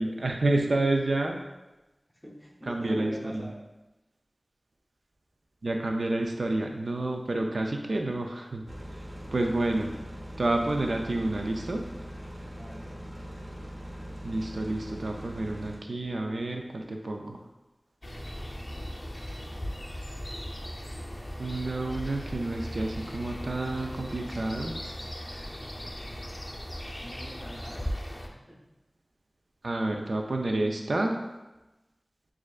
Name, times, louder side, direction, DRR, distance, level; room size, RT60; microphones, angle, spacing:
voice 1, 0.0-1.4 2.7-3.5 5.6-8.6 9.3-9.9 10.4-11.8 14.2-17.4 21.4-24.7 29.6-31.2, right 2 dB, 80° right, 3 dB, 0.3 m, -29 dB
voice 2, 2.2-3.6 12.5-13.0 27.0-28.0 28.3-28.6 30.2-30.3, equal, ahead, -2 dB, 0.8 m, -43 dB
sound 1, 8.7-15.8, equal, 35° right, 0.7 m, -41 dB
sound 2, 18.0-28.3, equal, 25° left, 0.5 m, -38 dB
6.3 x 2.5 x 2.3 m, 1.0 s
wide cardioid pair, 65°, 0 cm